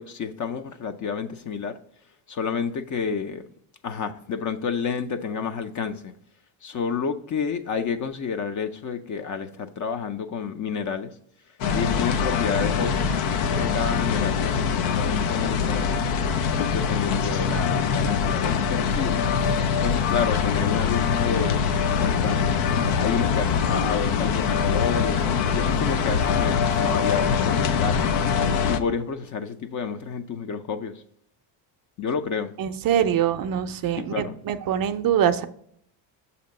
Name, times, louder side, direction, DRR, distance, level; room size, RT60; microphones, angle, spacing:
voice 1, 0.0-1.7 2.3-3.4 3.8-6.1 6.6-11.1 11.7-16.1 16.7-19.2 19.8-21.6 22.0-22.6 22.9-28.1 28.7-31.0 32.0-32.5 34.1-34.4, left 6 dB, 40° left, 0.5 m, -30 dB
sound 1, 11.6-28.8, left 6 dB, 80° left, 0.7 m, -23 dB
voice 2, 32.6-35.5, right 9 dB, 45° right, 0.5 m, -24 dB
6.6 x 2.8 x 5.2 m
cardioid pair, 100°, 49 cm